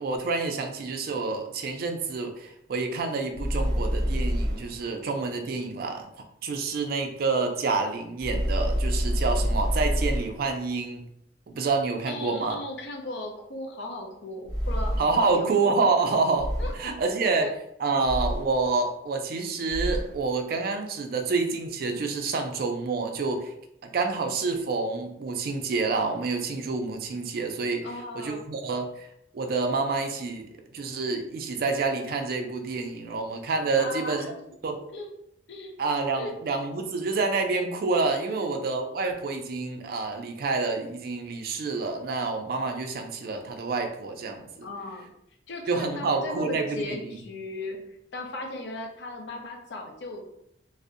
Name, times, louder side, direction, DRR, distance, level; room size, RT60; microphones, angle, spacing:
voice 1, 0.0-6.1 6.4-11.0 11.5-12.6 15.0-16.5 16.8-17.5 17.8-23.5 23.9-27.9 28.2-29.1 29.3-34.3 34.6-34.8 35.8-44.7 45.7-47.0, right 4 dB, 55° right, 4 dB, 0.3 m, -28 dB
sound 1, 3.3-4.8 8.2-10.5 14.5-15.3 16.4-17.0 18.0-18.7 19.7-20.2, equal, 5° left, 1.1 m, -27 dB
voice 2, 12.1-15.7 16.6-16.7 17.2-17.5 17.9-18.0 27.8-28.4 33.8-34.4 34.9-35.1 35.5-35.8 36.1-36.3 38.2-38.4 44.6-45.1 45.5-50.3, left 1 dB, 70° left, 2 dB, 0.5 m, -37 dB
2.5 x 2.0 x 2.4 m, 0.77 s
head